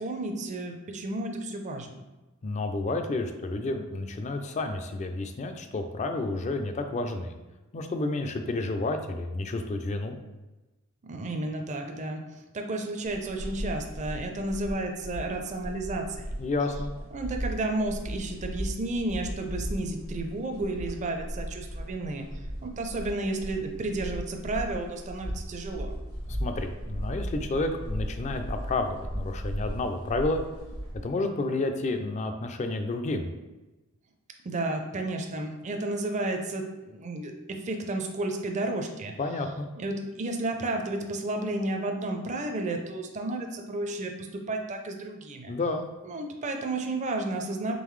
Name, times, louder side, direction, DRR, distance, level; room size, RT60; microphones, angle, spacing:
voice 1, 0.0-2.0 11.0-12.2 12.5-16.4 17.1-22.2 22.6-25.9 34.4-39.1 39.8-45.5 46.0-47.7, right 2 dB, 35° right, 3 dB, 0.4 m, -32 dB
voice 2, 2.4-7.3 7.7-10.2 16.4-16.9 26.3-30.4 31.0-33.3 39.2-39.7 45.5-45.9, left 2 dB, 30° left, 6 dB, 0.3 m, -30 dB
sound 1, 13.0-31.1, equal, 75° left, 1.2 m, -37 dB
3.8 x 3.4 x 3.1 m, 1.1 s
head